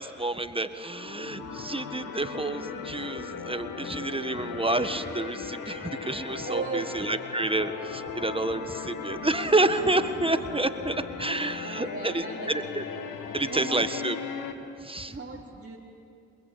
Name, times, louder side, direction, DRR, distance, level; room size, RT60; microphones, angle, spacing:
voice 1, 0.0-12.8 13.3-14.2 14.8-15.1, right 2 dB, 15° right, 9 dB, 1.6 m, -29 dB
sound 1, 0.8-14.5, left 6 dB, 80° left, 1.9 m, -37 dB
voice 2, 6.4-7.0 11.6-12.5 13.4-13.8 15.1-15.8, right 4 dB, 30° right, -4 dB, 3.6 m, -36 dB
28.5 x 22.0 x 8.6 m, 2.5 s
supercardioid pair, 50°, 33 cm